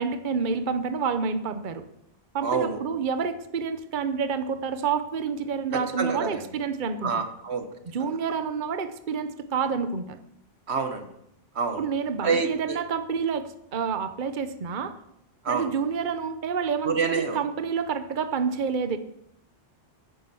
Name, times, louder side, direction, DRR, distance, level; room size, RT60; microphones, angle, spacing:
voice 1, 0.0-1.8 2.3-7.2 7.9-10.2 11.8-14.9 15.5-19.0, right 6 dB, 50° right, 10 dB, 1.0 m, -28 dB
voice 2, 2.4-2.8 5.7-6.5 7.0-7.7 8.0-8.1 10.7-11.1 11.5-11.9 12.2-12.8 15.4-15.7 16.8-17.4, right 5 dB, 80° right, 7 dB, 1.6 m, -27 dB
10.5 x 9.9 x 7.0 m, 0.77 s
omnidirectional pair, 1.1 m